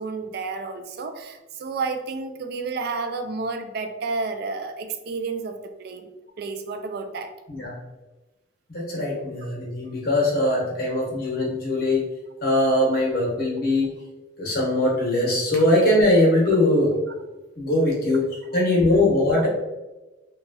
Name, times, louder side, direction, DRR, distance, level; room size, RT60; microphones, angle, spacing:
voice 1, 0.0-6.1 6.4-7.3 19.3-19.5, right 4 dB, 55° right, 7 dB, 0.3 m, -31 dB
voice 2, 8.7-12.0 12.4-13.9 14.4-16.9 17.6-18.3 18.5-19.5, left 1 dB, 50° left, -3 dB, 1.0 m, -21 dB
3.1 x 2.3 x 2.6 m, 1.1 s
head